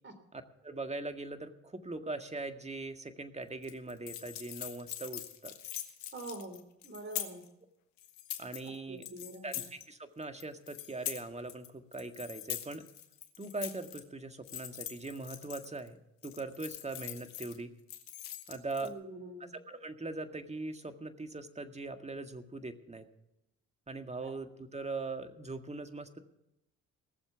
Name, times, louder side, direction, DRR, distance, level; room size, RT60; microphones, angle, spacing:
voice 1, 0.3-5.5 8.4-9.0 9.4-12.8 13.4-17.7 18.5-18.9 19.4-23.1 23.9-26.2, right 2 dB, 20° right, 7 dB, 1.8 m, -41 dB
sound 1, 3.6-7.5 8.0-8.7 9.0-9.8 10.2-11.7 11.9-14.0 14.4-15.9 16.2-17.6 17.9-18.9, left 12 dB, 85° left, 1.4 m, -43 dB
voice 2, 6.1-7.4 8.9-9.6 18.8-19.5 24.2-24.3, right 2 dB, 35° right, 8 dB, 3.3 m, -45 dB
19.0 x 7.3 x 6.9 m, 0.86 s
hypercardioid pair, 55°, 33 cm